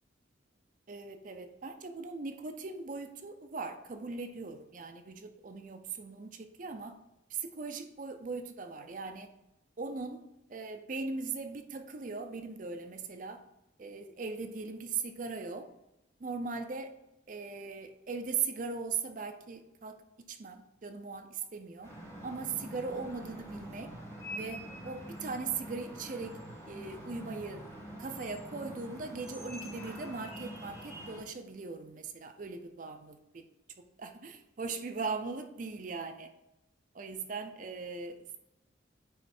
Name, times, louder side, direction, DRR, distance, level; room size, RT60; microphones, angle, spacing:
voice 1, 0.9-7.0 7.3-9.3 9.8-10.2 10.5-13.4 13.8-15.7 16.2-16.9 17.3-20.0 20.3-21.9 22.2-23.9 24.3-26.4 26.7-27.6 28.0-33.5 34.0-36.3 36.9-38.2, right 4 dB, 40° right, 7 dB, 0.5 m, -39 dB
sound 1, 21.8-31.2, equal, 15° left, 2.0 m, -45 dB
9.1 x 3.1 x 4.3 m, 0.90 s
head